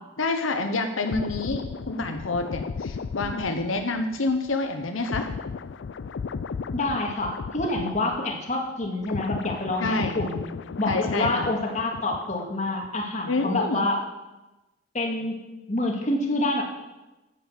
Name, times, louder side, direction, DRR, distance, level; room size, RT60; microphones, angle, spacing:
voice 1, 0.2-5.3 9.8-10.2 10.9-11.5 13.3-13.8, left 3 dB, 90° left, 6 dB, 1.0 m, -27 dB
sound 1, 1.0-8.5 8.8-12.5 12.8-13.1, left 5 dB, 60° left, 0.4 m, -35 dB
voice 2, 6.7-10.4 10.8-14.0 14.9-16.6, left 2 dB, 35° left, 1 dB, 2.0 m, -27 dB
10.0 x 7.9 x 7.5 m, 1.1 s
head